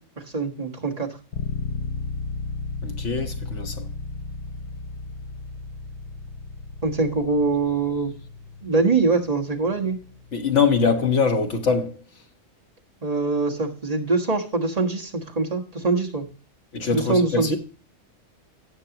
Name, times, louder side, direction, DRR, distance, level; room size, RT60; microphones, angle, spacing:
voice 1, 0.2-1.1 6.8-8.1 8.6-10.0 13.0-16.3 16.9-17.6, right 3 dB, 30° right, 1.6 m, -23 dB
sound 1, 1.3-11.1, left 3 dB, 85° left, 1.1 m, -35 dB
voice 2, 2.8-3.9 10.3-11.9 16.7-17.6, left 5 dB, 65° left, 1.6 m, -23 dB
17.0 x 6.7 x 2.9 m
omnidirectional pair, 1.3 m